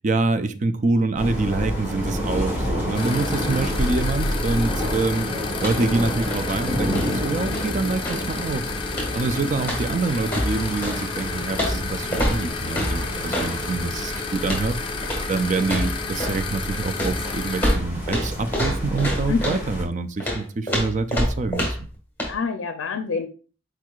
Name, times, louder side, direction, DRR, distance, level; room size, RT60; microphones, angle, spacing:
voice 1, 0.0-5.3 5.6-8.7 9.1-14.8 15.3-21.9, right 3 dB, 40° right, 11 dB, 0.4 m, -26 dB
sound 1, 1.2-19.8, equal, 10° right, 1.9 m, -29 dB
sound 2, 2.9-17.7, left 5 dB, 25° left, 0.5 m, -33 dB
sound 3, 5.5-6.0 6.2-8.3 8.9-9.3 9.6-11.0 11.5-13.6 14.4-14.7 15.0-15.3 15.6-16.5 17.0-19.7 20.2-21.9 22.2-22.4, equal, 10° left, 1.5 m, -27 dB
voice 2, 19.3-19.7 22.3-23.3, left 5 dB, 80° left, 7 dB, 0.4 m, -27 dB
4.7 x 4.6 x 2.3 m, 0.37 s
head